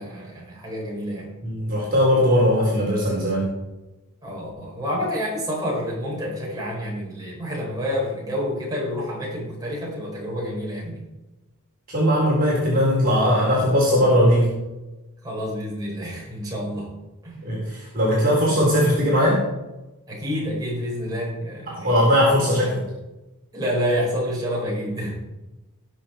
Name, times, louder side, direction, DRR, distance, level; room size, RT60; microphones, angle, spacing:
voice 1, 0.0-1.3 4.2-11.0 15.2-16.9 17.2-17.4 20.1-22.2 23.5-25.2, equal, 15° right, -4 dB, 5.2 m, -28 dB
voice 2, 1.4-3.5 11.9-14.5 17.4-19.4 21.7-22.8, equal, 40° right, -5 dB, 4.0 m, -19 dB
19.5 x 6.7 x 4.5 m, 1.0 s
head